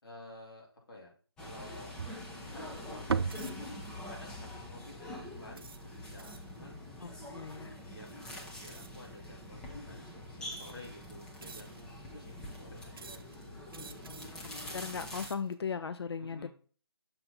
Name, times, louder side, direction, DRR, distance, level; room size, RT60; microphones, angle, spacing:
voice 1, 0.0-1.1 1.4-3.6 4.1-6.8 7.8-13.5 16.2-16.5, left 1 dB, 65° left, 3.1 m, -52 dB
sound 1, 1.4-15.3, left 1 dB, 5° left, 0.6 m, -45 dB
sound 2, 2.0-6.3, right 5 dB, 85° right, 0.4 m, -38 dB
sound 3, 3.3-3.7 4.4-4.6 5.6-6.6 8.7-9.1 9.9-10.0 10.5-10.9 11.4-12.0 12.9-13.4 13.7-14.4 14.9-15.6, right 5 dB, 60° right, 0.7 m, -52 dB
voice 2, 7.0-7.7 14.7-16.5, left 6 dB, 80° left, 0.4 m, -37 dB
6.6 x 3.9 x 4.2 m
figure-of-eight pair, 155°, 13 cm